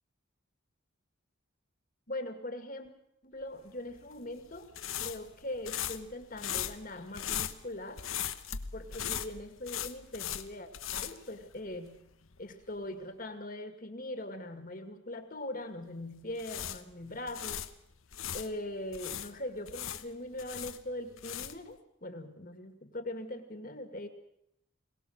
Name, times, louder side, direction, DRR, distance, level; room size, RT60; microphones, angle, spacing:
voice 1, 2.1-2.9 3.2-4.7 5.0-8.0 8.7-12.0 12.4-17.7 18.3-24.1, left 1 dB, 40° left, 7 dB, 2.1 m, -41 dB
sound 1, 3.9-12.0 12.2-12.4 16.2-18.5 18.9-21.7, left 10 dB, 80° left, 1.1 m, -39 dB
22.5 x 18.5 x 6.6 m, 0.76 s
head